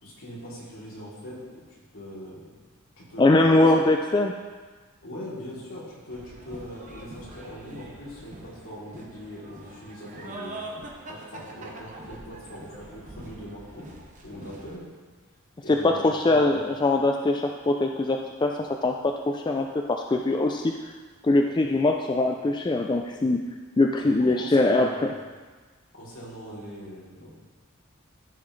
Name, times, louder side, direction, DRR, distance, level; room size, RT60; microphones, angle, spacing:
voice 1, 0.0-1.6 1.9-2.4 3.0-3.9 5.0-10.7 11.1-13.8 14.2-14.9 15.6-16.6 24.0-25.1 25.9-27.3, equal, 70° left, -7 dB, 3.1 m, -41 dB
voice 2, 3.2-4.3 15.7-20.7 21.2-23.4 23.8-25.1, left 2 dB, 20° left, 2 dB, 0.3 m, -22 dB
sound 1, 6.1-14.8, right 2 dB, 35° right, 1.0 m, -44 dB
14.5 x 6.0 x 3.2 m, 1.4 s
head